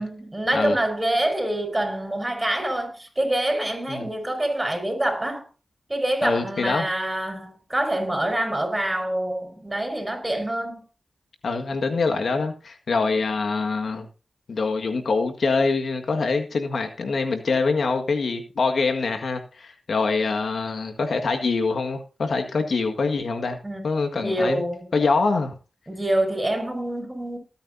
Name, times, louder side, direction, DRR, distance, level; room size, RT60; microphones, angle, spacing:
voice 1, 0.0-5.4 5.9-10.8 23.6-23.8 24.2-24.9 25.9-27.4, right 1 dB, 20° right, 5.3 m, -26 dB
voice 2, 6.2-6.9 11.4-14.1 14.5-23.6 23.8-24.6 24.9-25.5, left 4 dB, 75° left, 1.7 m, -24 dB
19.0 x 9.0 x 2.7 m
cardioid pair, 45°, 0 cm